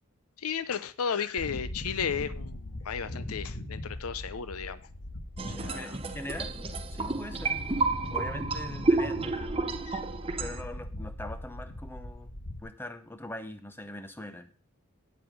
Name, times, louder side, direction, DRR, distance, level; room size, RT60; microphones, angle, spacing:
voice 1, 0.4-4.8 5.5-6.0 9.9-10.1, left 7 dB, 85° left, 0.6 m, -34 dB
sound 1, 1.4-12.6, left 1 dB, 55° left, 1.6 m, -40 dB
sound 2, 5.4-10.6, right 3 dB, 25° right, 0.7 m, -31 dB
voice 2, 5.5-7.6 8.1-9.8 10.4-12.3 12.6-14.5, left 1 dB, 10° left, 0.7 m, -42 dB
9.0 x 7.9 x 5.2 m
head